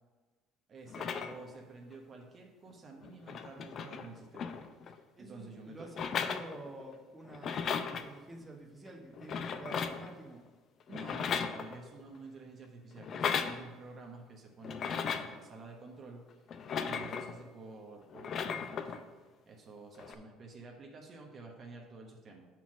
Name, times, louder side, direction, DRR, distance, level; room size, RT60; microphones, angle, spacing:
voice 1, 0.7-4.6 4.9-5.9 7.6-7.7 10.9-16.2 16.8-19.1 19.5-22.5, right 3 dB, 40° right, 1 dB, 1.1 m, -50 dB
sound 1, 0.9-1.6 2.7-2.8 3.0-5.0 5.9-6.9 7.3-8.1 9.1-10.1 10.9-12.0 13.0-13.6 14.6-15.4 16.5-17.4 18.1-19.0 20.0-20.1, left 6 dB, 50° left, 0.5 m, -36 dB
voice 2, 5.2-10.4, right 1 dB, 15° right, 0 dB, 1.1 m, -49 dB
5.7 x 4.5 x 6.1 m, 1.3 s
supercardioid pair, 100°, 0 cm